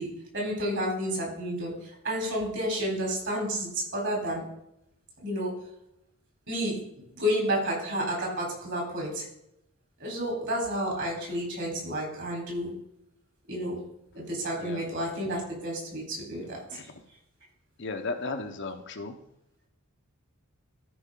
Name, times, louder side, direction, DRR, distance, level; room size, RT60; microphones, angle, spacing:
voice 1, 0.0-4.5 5.2-5.5 6.5-6.8 7.1-9.2 10.0-12.7 13.5-13.8 14.1-16.6, equal, 55° right, -1 dB, 3.8 m, -31 dB
voice 2, 17.8-19.1, left 3 dB, 50° left, 6 dB, 0.9 m, -35 dB
13.5 x 5.2 x 3.8 m, 0.81 s
head